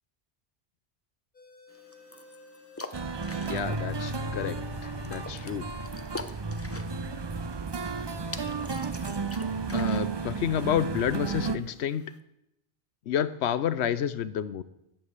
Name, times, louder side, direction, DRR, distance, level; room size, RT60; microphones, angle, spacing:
sound 1, 1.3-6.5, left 3 dB, 50° left, 1.9 m, -53 dB
sound 2, 1.7-12.2, left 2 dB, 15° left, 0.6 m, -46 dB
sound 3, 2.9-11.6, right 4 dB, 30° right, 0.5 m, -33 dB
voice 1, 3.4-5.7 9.7-12.0 13.1-14.6, left 9 dB, 80° left, 15 dB, 1.0 m, -30 dB
11.5 x 7.2 x 8.1 m, 0.82 s
omnidirectional pair, 1.1 m